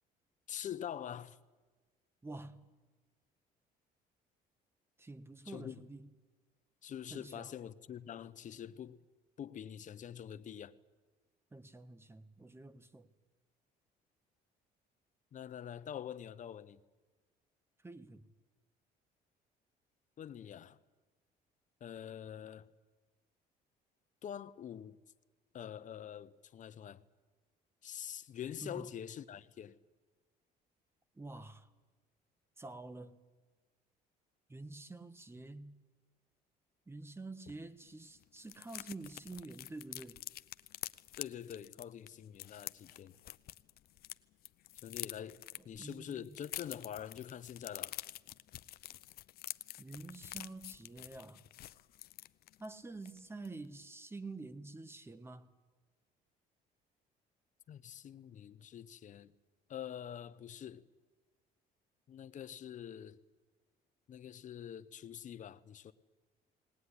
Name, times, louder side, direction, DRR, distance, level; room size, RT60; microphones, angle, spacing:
voice 1, 0.5-1.4 5.5-5.9 6.8-9.0 9.4-10.7 15.3-16.8 20.2-20.8 21.8-22.7 24.2-25.0 25.5-27.0 27.8-29.8 41.2-43.1 44.8-45.4 45.6-48.0 57.7-59.3 59.7-60.8 62.1-63.2 64.1-65.9, left 9 dB, 50° left, 1.0 m, -45 dB
voice 2, 2.2-2.7 5.0-6.1 7.1-7.5 11.5-13.1 17.8-18.3 28.6-28.9 31.1-31.7 32.6-33.2 34.5-35.8 36.9-40.2 45.6-46.4 49.8-51.4 52.6-55.5, right 2 dB, 15° right, 1.3 m, -48 dB
sound 1, 37.5-37.6 37.8-37.9 38.2-44.1 44.4-52.7 53.0-53.2 53.4-53.7, left 14 dB, 65° left, 0.6 m, -47 dB
19.5 x 19.0 x 9.9 m
cardioid pair, 110°, 17 cm